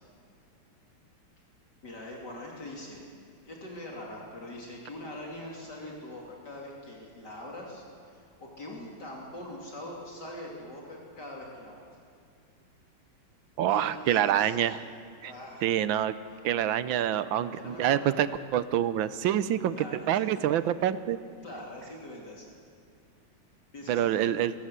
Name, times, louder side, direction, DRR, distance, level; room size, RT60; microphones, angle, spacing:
voice 1, 1.8-3.1 3.5-11.9 13.6-14.6 15.1-15.7 17.4-18.2 19.8-20.6 21.4-22.5 23.7-24.5, left 1 dB, 55° left, -2 dB, 3.5 m, -43 dB
voice 2, 13.6-14.8 15.2-15.3 15.6-16.1 16.4-18.3 18.5-19.8 20.1-21.2 23.9-24.5, right 11 dB, 75° right, 14 dB, 1.5 m, -26 dB
23.0 x 17.0 x 8.1 m, 2.4 s
omnidirectional pair, 2.3 m